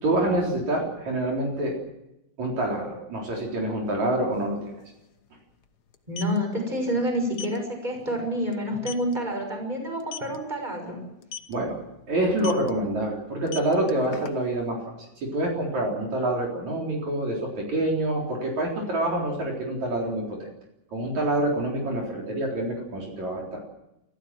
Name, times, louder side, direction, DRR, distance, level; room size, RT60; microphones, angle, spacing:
voice 1, 0.0-1.7 2.4-4.7 11.5-11.8 12.1-14.8 15.2-20.5 20.9-23.6, right 1 dB, 60° right, -1 dB, 5.3 m, -26 dB
sound 1, 4.3-4.4 4.7-4.9 5.9-6.4 7.3-7.6 8.0-8.2 8.5-8.6 8.9-9.1 10.0-10.4 11.2-11.5 12.4-12.7 13.3-14.6, left 7 dB, 80° left, 0.9 m, -37 dB
voice 2, 6.1-11.0, equal, 15° right, 3 dB, 6.3 m, -28 dB
28.0 x 15.0 x 7.5 m, 0.89 s
omnidirectional pair, 3.7 m